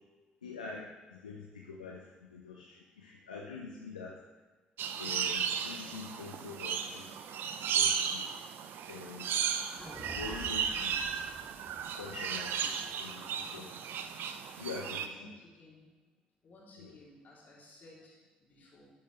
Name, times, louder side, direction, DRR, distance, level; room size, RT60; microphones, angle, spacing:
voice 1, 0.4-4.2 5.0-7.1 7.6-8.2 8.9-9.4 10.0-11.0 12.0-12.7 13.0-13.7 14.6-15.3 16.8-16.9, left 4 dB, 85° left, -3 dB, 0.8 m, -45 dB
sound 1, 4.8-15.1, right 7 dB, 55° right, 0.6 m, -35 dB
sound 2, 9.8-14.0, right 1 dB, ahead, 2.5 m, -49 dB
voice 2, 14.8-15.9 16.4-18.9, left 1 dB, 45° left, -4 dB, 3.3 m, -57 dB
12.5 x 6.6 x 3.4 m, 1.2 s
figure-of-eight pair, 50°, 4 cm